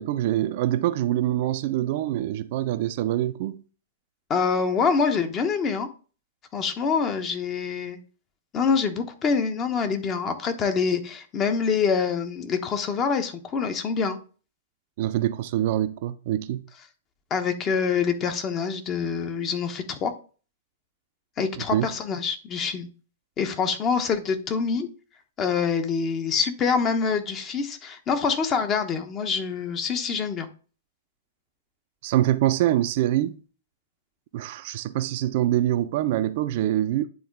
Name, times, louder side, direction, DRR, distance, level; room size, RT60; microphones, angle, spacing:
voice 1, 0.0-3.6 15.0-16.6 21.7-21.9 32.0-33.4 34.3-37.1, right 13 dB, 50° right, 0.5 m, -24 dB
voice 2, 4.3-5.9 6.5-8.0 8.5-14.2 17.3-20.1 21.4-22.9 23.4-24.9 25.4-30.5, left 5 dB, 25° left, 1.0 m, -25 dB
9.5 x 3.8 x 3.6 m
figure-of-eight pair, 110°, 0 cm